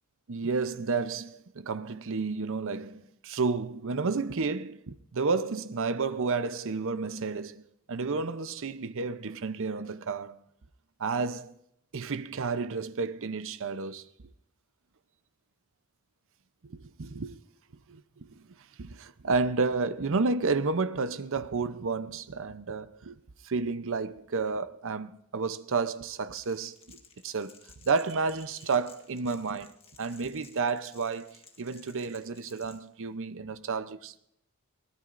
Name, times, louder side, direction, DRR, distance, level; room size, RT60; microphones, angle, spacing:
voice 1, 0.3-10.4 11.0-11.5 11.9-14.1 16.6-17.4 17.9-23.2 23.4-27.6 27.8-34.2, right 4 dB, 65° right, 0.7 m, -31 dB
Crackle, 26.3-32.8, left 5 dB, 25° left, 1.7 m, -56 dB
23.0 x 17.5 x 2.6 m
head